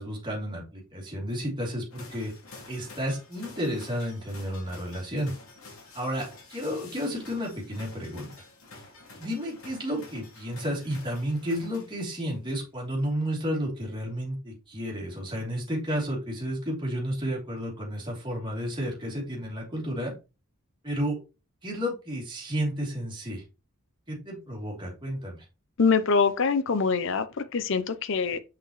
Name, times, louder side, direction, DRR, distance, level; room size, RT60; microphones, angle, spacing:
voice 1, 0.0-2.3 2.7-5.3 5.9-8.3 9.2-20.1 20.8-21.2 21.6-23.4 24.1-25.4, equal, 25° right, 3.0 m, -32 dB
sound 1, 1.9-12.3, left 3 dB, 80° left, 2.5 m, -49 dB
voice 2, 25.8-28.4, left 5 dB, 65° left, 0.7 m, -24 dB
5.9 x 5.8 x 3.1 m
head